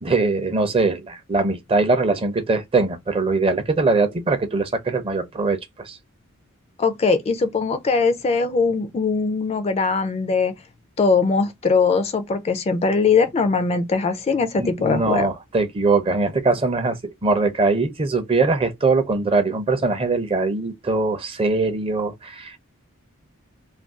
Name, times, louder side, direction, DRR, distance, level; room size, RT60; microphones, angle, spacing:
voice 1, 0.0-6.0 14.6-22.6, right 3 dB, 25° right, 0.5 m, -21 dB
voice 2, 6.8-10.5 11.0-15.3, left 4 dB, 30° left, 0.3 m, -21 dB
2.4 x 2.2 x 3.5 m
head